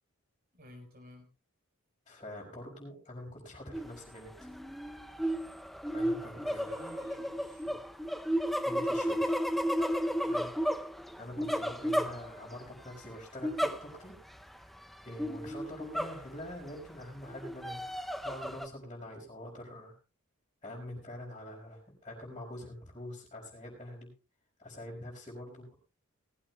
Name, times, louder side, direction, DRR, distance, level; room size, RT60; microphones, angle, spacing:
voice 1, 0.5-1.3 6.0-7.9 10.2-10.6, equal, 45° right, 5 dB, 4.9 m, -52 dB
voice 2, 2.1-4.5 5.9-6.7 8.6-9.3 11.2-14.2 14.5-14.7 15.0-19.9 20.6-24.1 24.6-25.7, left 1 dB, 25° left, -6 dB, 4.8 m, -45 dB
sound 1, 3.7-4.0 4.4-12.7 13.4-14.2 14.5-14.6 15.2-16.6 17.2-18.7, equal, ahead, 0.5 m, -33 dB
19.0 x 15.5 x 2.3 m, 0.30 s
head